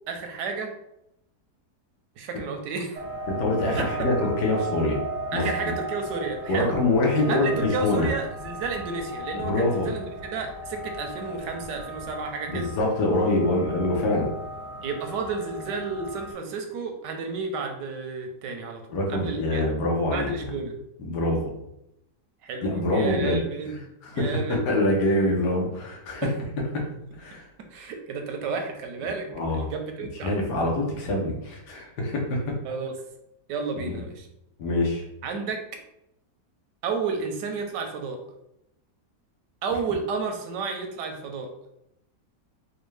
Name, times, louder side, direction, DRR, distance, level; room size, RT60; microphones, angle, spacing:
voice 1, 0.1-0.7 2.2-3.0 3.8-3.9 5.3-6.8 7.3-12.7 14.8-18.8 19.1-19.6 20.1-20.7 22.4-24.6 26.2-26.3 27.7-30.3 32.6-32.9 33.5-34.3 35.2-35.6 36.8-38.2 39.6-41.5, right 4 dB, 85° right, 4 dB, 1.3 m, -32 dB
sound 1, 2.9-16.3, right 1 dB, 65° right, 0.8 m, -36 dB
voice 2, 3.3-5.0 5.3-5.5 6.5-8.1 9.4-9.9 12.5-14.3 18.9-20.5 21.0-21.5 22.6-23.4 24.0-26.3 26.7-26.9 27.2-27.4 29.3-29.7 30.2-32.4 33.8-34.0 34.6-35.0, left 2 dB, 75° left, -1 dB, 1.5 m, -25 dB
4.3 x 2.3 x 3.2 m, 0.82 s
omnidirectional pair, 1.8 m